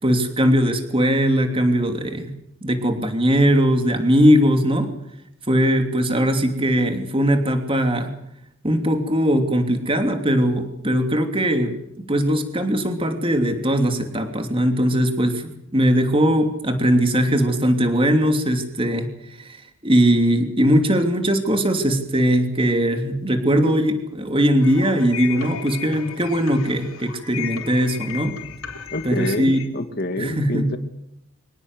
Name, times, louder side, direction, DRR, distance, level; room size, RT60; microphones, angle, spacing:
voice 1, 0.0-2.3 2.6-4.9 5.5-8.1 8.6-11.7 12.1-19.1 19.4-28.4 29.0-29.6 30.2-30.6, equal, 25° right, 6 dB, 3.0 m, -20 dB
sound 1, 24.6-29.7, left 8 dB, 90° left, 3.7 m, -35 dB
voice 2, 28.9-30.8, left 1 dB, 45° left, 8 dB, 2.4 m, -27 dB
25.0 x 18.5 x 8.1 m, 0.77 s
head